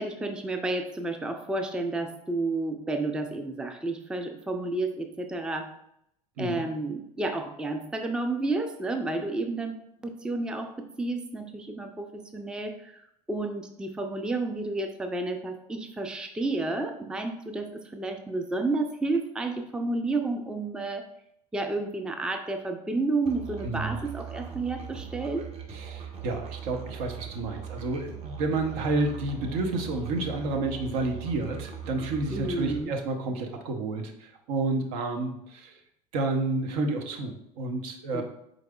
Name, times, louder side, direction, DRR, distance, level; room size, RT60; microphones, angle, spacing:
voice 1, 0.0-5.7 6.4-13.0 13.3-21.1 21.5-25.5 32.3-32.9 38.1-38.2, right 2 dB, 5° right, 5 dB, 0.4 m, -31 dB
Musical instrument, 23.3-32.9, right 8 dB, 30° right, 0.9 m, -40 dB
voice 2, 23.6-24.0 25.7-35.8 36.1-38.2, right 2 dB, 65° right, 4 dB, 0.7 m, -30 dB
4.7 x 3.8 x 2.3 m, 0.76 s
hypercardioid pair, 70°, 20 cm